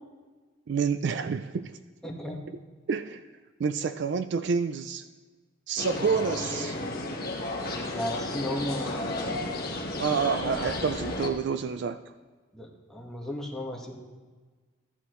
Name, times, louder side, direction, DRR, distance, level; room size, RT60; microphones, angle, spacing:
voice 1, 0.7-1.7 2.9-3.2 3.6-5.0 5.7-6.8 10.0-12.0, right 5 dB, 55° right, 10 dB, 0.3 m, -28 dB
voice 2, 2.0-2.4 7.9-9.3 12.5-14.0, left 1 dB, ahead, -2 dB, 1.4 m, -35 dB
sound 1, 5.8-11.3, left 2 dB, 45° left, 1.3 m, -33 dB
14.5 x 11.0 x 3.1 m, 1.4 s
head